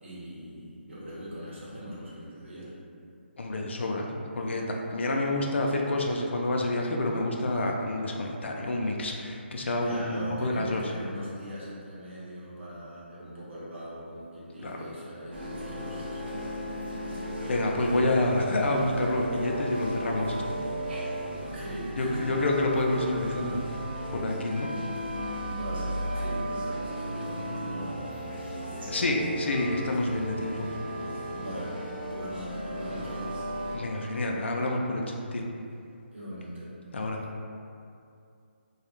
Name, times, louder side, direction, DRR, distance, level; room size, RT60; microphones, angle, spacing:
voice 1, 0.0-2.7 9.8-16.6 21.4-22.3 25.4-29.0 31.3-31.8 32.1-33.3 36.1-36.7, equal, 80° right, -9 dB, 0.9 m, -40 dB
voice 2, 3.4-10.8 14.6-14.8 17.5-20.6 22.0-23.9 24.1-24.7 28.9-30.7 33.7-35.0 35.3-35.4 36.9-37.3, left 2 dB, 75° left, 0 dB, 0.4 m, -28 dB
sound 1, 15.3-33.8, right 1 dB, 60° right, 0.6 m, -35 dB
2.3 x 2.0 x 3.0 m, 2.5 s
hypercardioid pair, 155°, 6 cm